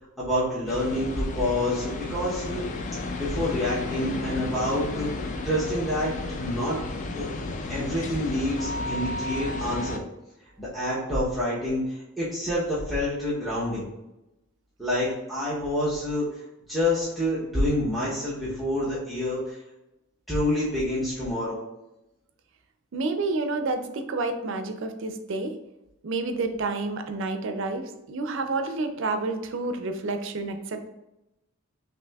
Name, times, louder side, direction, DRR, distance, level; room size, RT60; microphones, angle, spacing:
voice 1, 0.2-2.6 2.9-5.1 5.4-6.8 7.1-7.3 7.7-10.0 10.6-13.9 14.8-16.2 16.7-19.6 20.3-21.6, left 1 dB, ahead, -10 dB, 0.7 m, -27 dB
sound 1, 0.7-10.0, left 2 dB, 35° left, 0.3 m, -33 dB
voice 2, 22.9-25.6 26.0-30.9, right 3 dB, 60° right, 7 dB, 0.4 m, -29 dB
5.9 x 2.6 x 2.3 m, 0.95 s
head